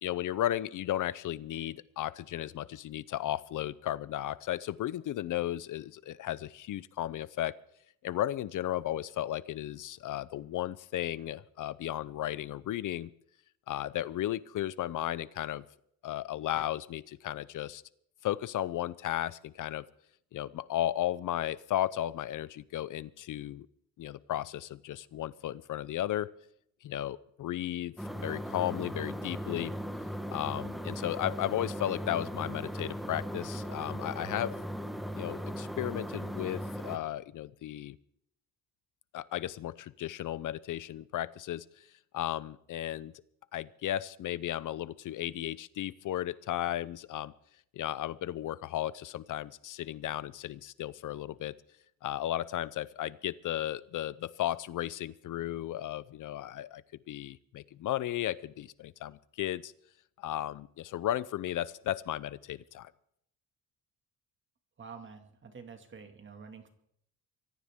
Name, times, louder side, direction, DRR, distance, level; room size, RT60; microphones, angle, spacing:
voice 1, 0.0-7.6 8.0-13.1 13.7-15.6 16.0-17.8 18.2-19.9 20.3-23.7 24.0-26.3 26.8-29.7 30.3-34.6 35.2-38.0 39.1-41.9 42.1-43.1 43.5-47.3 47.7-51.6 52.0-56.8 57.1-59.7 60.2-62.9, left 13 dB, 60° left, 18 dB, 0.6 m, -34 dB
sound 1, 28.0-37.0, equal, ahead, 1.2 m, -38 dB
voice 2, 64.8-66.7, right 5 dB, 30° right, 6 dB, 2.0 m, -48 dB
24.0 x 16.5 x 3.6 m, 0.71 s
cardioid pair, 155°, 37 cm